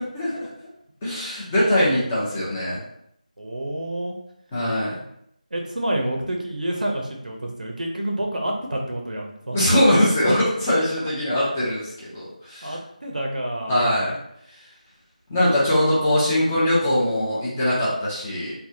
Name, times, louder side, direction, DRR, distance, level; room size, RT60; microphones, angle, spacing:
voice 1, 0.1-0.5 1.0-2.8 4.5-5.0 9.5-12.8 13.7-14.1 15.3-18.5, left 1 dB, 10° left, -9 dB, 0.5 m, -21 dB
voice 2, 3.4-4.2 5.5-9.7 10.3-10.4 12.6-13.9, right 1 dB, 75° right, 0 dB, 0.7 m, -28 dB
3.3 x 2.2 x 2.6 m, 0.74 s
figure-of-eight pair, 170°, 4 cm